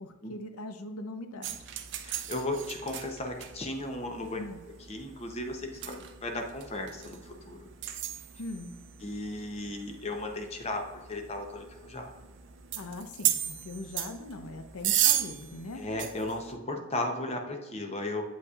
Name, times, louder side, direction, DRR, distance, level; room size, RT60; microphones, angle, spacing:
voice 1, 0.0-1.6 4.4-4.6 8.4-8.7 12.8-15.9, left 2 dB, 80° left, 7 dB, 0.7 m, -41 dB
sound 1, 1.4-16.5, right 11 dB, 55° right, 0.5 m, -36 dB
voice 2, 2.0-4.4 4.9-7.7 9.0-12.1 15.8-18.2, left 2 dB, 30° left, 4 dB, 0.7 m, -35 dB
8.1 x 5.2 x 2.4 m, 1.2 s
head